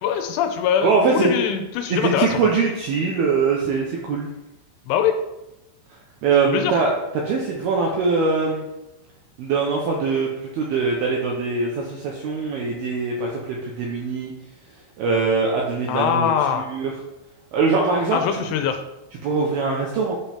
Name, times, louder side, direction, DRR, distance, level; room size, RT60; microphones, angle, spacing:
voice 1, 0.0-2.5 4.9-5.1 6.5-6.8 15.9-16.7 18.1-18.8, left 8 dB, 80° left, 6 dB, 3.1 m, -22 dB
voice 2, 0.8-1.3 1.9-4.3 6.2-8.7 9.4-14.3 15.0-16.9 17.5-18.2 19.2-20.2, right 4 dB, 80° right, -1 dB, 2.3 m, -22 dB
10.5 x 5.4 x 4.4 m, 0.95 s
omnidirectional pair, 5.7 m